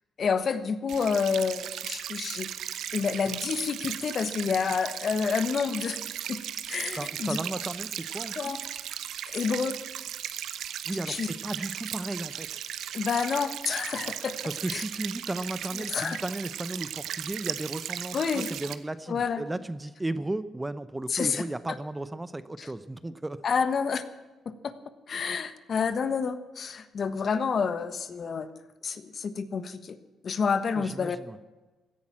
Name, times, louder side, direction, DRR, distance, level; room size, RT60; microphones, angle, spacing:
voice 1, 0.2-2.5 2.9-6.0 6.3-6.4 6.7-7.4 8.3-8.6 9.3-9.8 11.1-11.3 12.9-14.4 14.7-14.8 15.9-16.2 18.1-18.5 19.1-19.4 21.1-21.5 22.6-22.7 23.4-24.0 24.4-24.7 25.1-28.5 28.8-30.0 30.2-31.2, left 6 dB, 50° left, 12 dB, 1.3 m, -29 dB
sound 1, 0.9-18.7, right 10 dB, 75° right, 1.0 m, -37 dB
voice 2, 7.0-8.6 10.8-12.5 14.4-23.4 30.7-31.4, right 2 dB, 15° right, 14 dB, 0.8 m, -35 dB
16.5 x 10.5 x 7.5 m, 1.2 s
cardioid pair, 90°, 0 cm